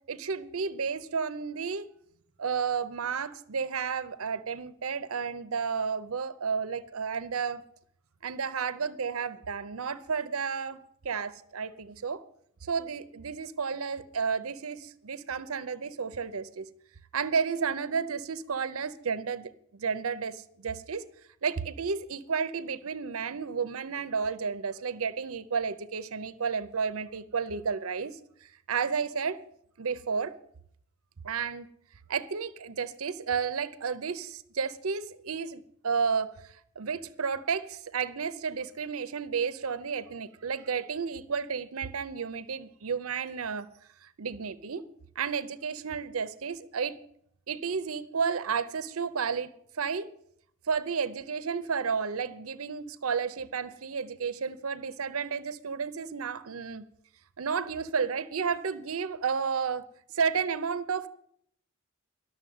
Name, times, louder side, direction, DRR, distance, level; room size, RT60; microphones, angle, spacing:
voice 1, 0.1-1.9 2.4-7.6 8.2-10.8 11.0-12.2 12.6-16.7 17.1-21.0 21.4-29.4 29.8-30.3 31.2-31.7 32.1-43.7 44.0-44.8 45.2-47.0 47.5-50.1 50.7-56.9 57.4-59.8 60.1-61.1, right 6 dB, 80° right, 0.7 m, -32 dB
12.0 x 6.9 x 9.4 m
head